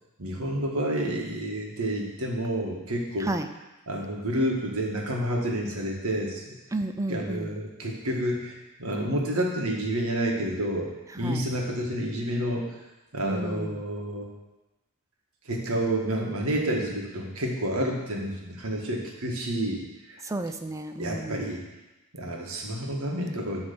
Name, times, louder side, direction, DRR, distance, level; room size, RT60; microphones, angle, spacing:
voice 1, 0.2-3.3 3.9-6.6 7.1-12.7 13.1-14.3 15.4-19.8 20.1-20.2 21.0-21.6 22.1-23.6, right 1 dB, 85° right, 0 dB, 1.6 m, -29 dB
voice 2, 6.7-7.5 11.2-11.4 13.2-13.8 20.2-21.5, right 2 dB, 15° right, 7 dB, 0.4 m, -32 dB
10.0 x 3.6 x 6.9 m, 1.1 s
head